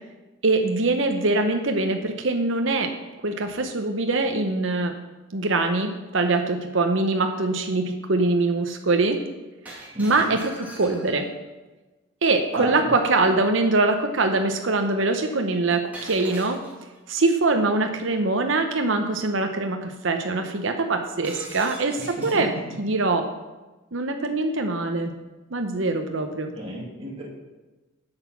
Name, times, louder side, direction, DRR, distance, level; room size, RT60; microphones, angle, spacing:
voice 1, 0.4-2.9 3.2-4.9 5.3-9.2 9.7-11.3 12.2-16.6 17.1-22.5 22.8-23.3 23.9-25.1 25.5-26.5, right 3 dB, 65° right, 5 dB, 0.9 m, -23 dB
Shatter, 9.7-11.3 15.9-17.0 21.2-22.5, right 1 dB, 10° right, 2.1 m, -42 dB
voice 2, 9.9-10.3 12.6-13.2 26.5-27.2, right 1 dB, 25° right, -5 dB, 2.7 m, -33 dB
8.0 x 8.0 x 5.9 m, 1.2 s
head